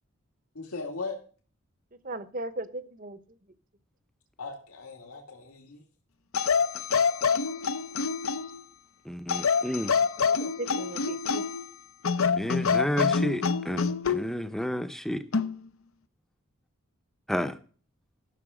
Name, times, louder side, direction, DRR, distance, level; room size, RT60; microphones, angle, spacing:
voice 1, 0.5-1.2 4.4-5.8, left 3 dB, 85° left, 2.3 m, -38 dB
voice 2, 2.0-3.4 9.6-11.4, right 2 dB, 40° right, 0.9 m, -38 dB
sound 1, 6.3-8.6 9.3-11.6 12.0-14.2 15.3-15.6, left 5 dB, 70° left, 0.7 m, -26 dB
voice 3, 9.1-9.9 12.3-15.2 17.3-17.5, equal, ahead, 0.7 m, -31 dB
13.5 x 6.8 x 5.0 m
head